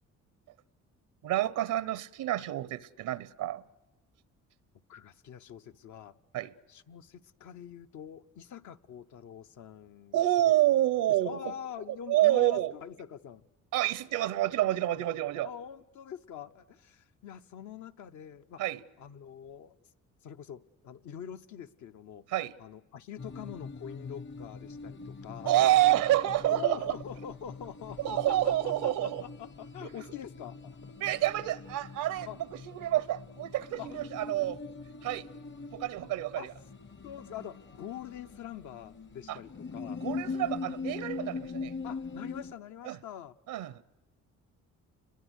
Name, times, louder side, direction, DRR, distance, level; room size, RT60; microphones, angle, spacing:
voice 1, 1.2-3.6 6.3-6.5 10.1-11.5 12.1-12.7 13.7-15.5 18.6-18.8 22.3-22.5 25.4-26.9 28.0-29.2 29.8-29.9 31.0-32.3 32.7-34.6 35.0-35.3 35.7-36.5 39.3-39.4 40.0-41.7 42.9-43.0 43.5-43.7, right 14 dB, 90° right, 0.8 m, -28 dB
voice 2, 4.9-6.2 6.7-10.5 11.2-13.5 15.4-18.6 19.0-19.8 20.2-22.3 22.6-25.5 26.1-26.2 26.5-30.8 32.3-32.4 33.8-34.0 36.4-36.5 37.0-40.0 41.8-43.3, left 9 dB, 70° left, 0.9 m, -44 dB
sound 1, 23.2-42.5, left 4 dB, 35° left, 0.8 m, -42 dB
29.0 x 21.5 x 8.1 m
cardioid pair, 90°, 30 cm